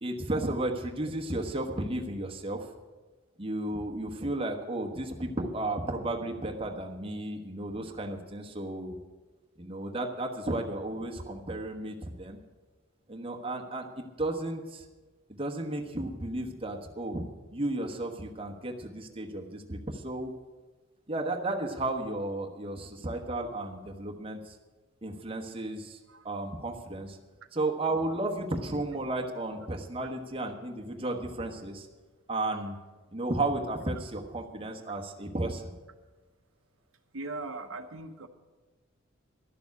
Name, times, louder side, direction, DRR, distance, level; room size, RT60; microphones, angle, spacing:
voice 1, 0.0-2.7 3.4-8.9 9.6-12.4 13.1-14.8 15.3-17.2 17.5-20.3 21.1-24.6 25.0-26.0 26.2-27.2 27.5-31.9 32.3-32.8 33.1-35.7, right 2 dB, 25° right, 2 dB, 1.2 m, -33 dB
voice 2, 37.1-38.3, right 2 dB, 70° right, 6 dB, 0.9 m, -39 dB
12.0 x 7.0 x 9.6 m, 1.3 s
head